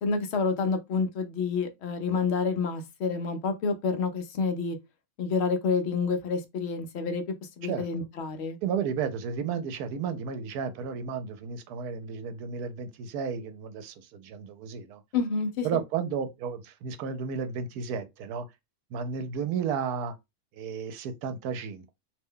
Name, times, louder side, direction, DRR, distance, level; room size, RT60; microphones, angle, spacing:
voice 1, 0.0-4.8 5.2-7.2 7.6-8.6 15.1-15.7, left 4 dB, 60° left, 0.7 m, -28 dB
voice 2, 8.6-15.0 15.6-18.5 18.9-20.2 20.5-21.9, right 6 dB, 80° right, 1.1 m, -33 dB
2.7 x 2.2 x 3.6 m
omnidirectional pair, 1.6 m